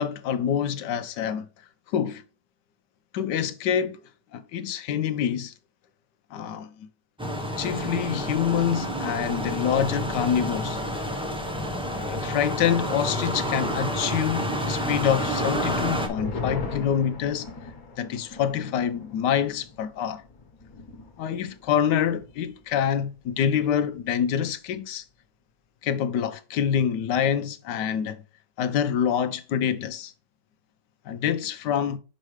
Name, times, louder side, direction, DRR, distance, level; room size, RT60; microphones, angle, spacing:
voice 1, 0.0-1.5 1.9-2.2 3.1-4.0 4.3-5.5 6.3-6.7 7.6-10.8 12.0-17.5 18.0-20.2 21.2-25.0 25.8-28.2 28.6-30.1 31.1-32.0, left 8 dB, 75° left, 1.2 m, -26 dB
sound 1, 7.2-16.1, equal, 5° right, 0.5 m, -29 dB
sound 2, 15.8-22.5 22.8-22.9 23.3-23.8, left 4 dB, 55° left, 1.6 m, -39 dB
6.4 x 5.1 x 3.1 m
omnidirectional pair, 1.9 m